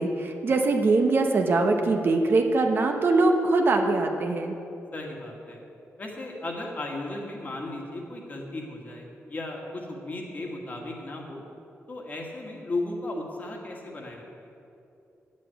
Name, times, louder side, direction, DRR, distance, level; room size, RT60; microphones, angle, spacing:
voice 1, 0.0-4.5, right 3 dB, 45° right, 4 dB, 0.9 m, -22 dB
voice 2, 4.9-5.6 6.0-11.4 11.9-14.2, left 2 dB, 35° left, 0 dB, 1.7 m, -35 dB
8.9 x 7.4 x 8.9 m, 2.8 s
wide cardioid pair, 150°, 5 cm